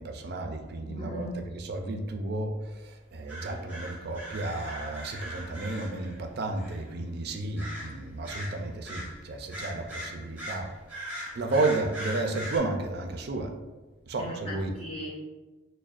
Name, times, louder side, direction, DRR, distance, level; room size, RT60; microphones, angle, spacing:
voice 1, 0.0-10.7 11.3-13.5 14.1-14.8, right 2 dB, 50° right, 5 dB, 0.4 m, -32 dB
voice 2, 0.9-1.4 14.2-15.1, equal, 30° left, -6 dB, 0.5 m, -38 dB
sound 1, 3.3-6.2 6.6-6.8 7.6-8.0 8.2-9.1 9.5-12.6, equal, 10° right, 0.8 m, -40 dB
6.2 x 2.1 x 2.5 m, 1.2 s
head